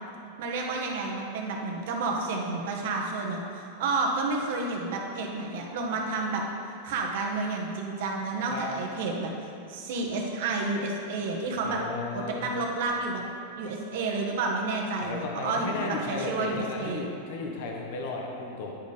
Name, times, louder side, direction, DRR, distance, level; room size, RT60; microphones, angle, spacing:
voice 1, 0.4-6.4 6.8-11.8 12.1-13.2 13.6-17.1, right 3 dB, 65° right, 0 dB, 1.3 m, -30 dB
voice 2, 11.6-12.5 15.0-18.7, left 3 dB, 60° left, 0 dB, 1.1 m, -34 dB
10.0 x 4.3 x 5.1 m, 2.7 s
supercardioid pair, 150°, 0 cm